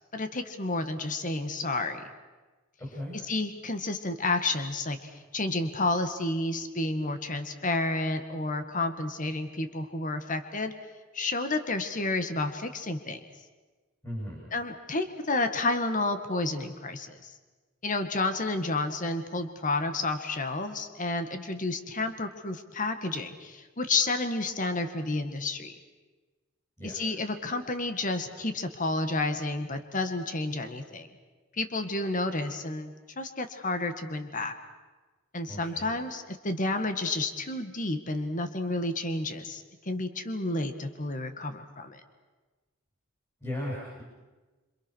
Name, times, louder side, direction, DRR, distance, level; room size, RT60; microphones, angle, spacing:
voice 1, 0.1-2.0 3.3-10.7 11.1-13.2 14.5-17.3 17.8-25.7 26.8-31.1 31.6-34.5 35.3-42.0, left 2 dB, 40° left, 8 dB, 1.9 m, -30 dB
voice 2, 2.8-3.2 14.0-14.4 26.8-27.0 35.5-35.9 43.4-44.0, left 1 dB, 15° left, -5 dB, 7.5 m, -36 dB
28.0 x 27.0 x 6.5 m, 1.3 s
head